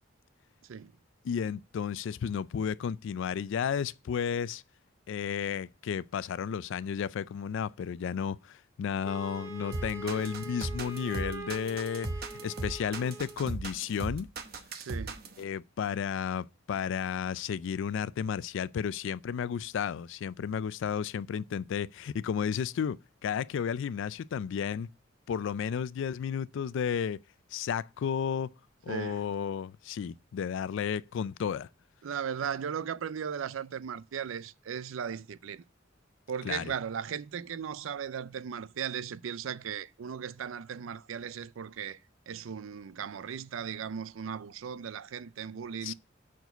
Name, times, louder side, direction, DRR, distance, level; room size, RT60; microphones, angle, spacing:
voice 1, 1.2-4.6 5.1-12.1 12.4-14.3 15.4-24.9 25.3-27.2 27.5-28.5 28.8-31.7 36.4-36.7 45.8-45.9, left 7 dB, 65° left, 0.3 m, -33 dB
Wind instrument woodwind instrument, 9.0-13.5, right 3 dB, 15° right, 1.0 m, -43 dB
sound 1, 9.7-15.4, right 2 dB, 50° right, 1.0 m, -37 dB
voice 2, 14.8-15.2 28.9-29.2 32.0-35.6 36.3-42.0 42.3-45.9, right 7 dB, 80° right, 0.4 m, -37 dB
6.1 x 4.7 x 6.6 m
head